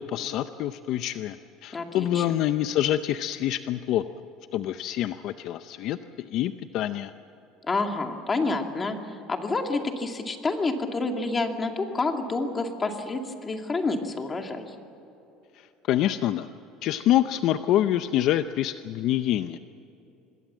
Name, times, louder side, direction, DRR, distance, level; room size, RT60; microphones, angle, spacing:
voice 1, 0.0-4.0 4.5-7.1 15.5-16.5 16.8-19.6, left 12 dB, 55° left, 11 dB, 0.7 m, -26 dB
voice 2, 1.7-2.2 7.6-14.7, left 3 dB, 20° left, 4 dB, 2.3 m, -28 dB
26.0 x 20.5 x 7.4 m, 2.9 s
cardioid pair, 140°, 0 cm